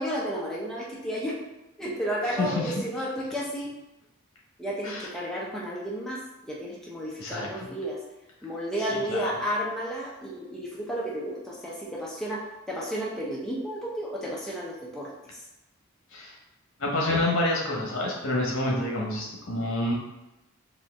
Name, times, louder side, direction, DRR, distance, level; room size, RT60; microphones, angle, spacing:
voice 1, 0.0-1.4 1.8-3.7 4.6-8.0 8.4-15.1, equal, ahead, -5 dB, 0.6 m, -32 dB
voice 2, 2.2-2.7 4.8-5.1 7.2-7.7 8.8-9.3 16.1-16.4 16.8-19.9, left 1 dB, 75° left, -2 dB, 1.1 m, -28 dB
4.3 x 2.5 x 3.5 m, 0.96 s
head